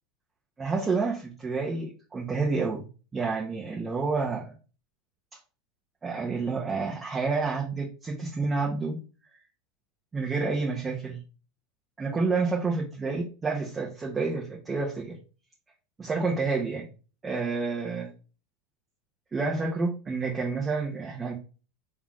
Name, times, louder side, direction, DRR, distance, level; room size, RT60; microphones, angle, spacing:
voice 1, 0.6-2.8 3.1-4.5 6.0-9.0 10.1-11.2 12.0-15.2 16.0-16.9 17.2-18.1 19.3-21.3, right 4 dB, 20° right, -3 dB, 1.4 m, -29 dB
4.2 x 3.5 x 3.0 m, 0.34 s
hypercardioid pair, 90°, 0 cm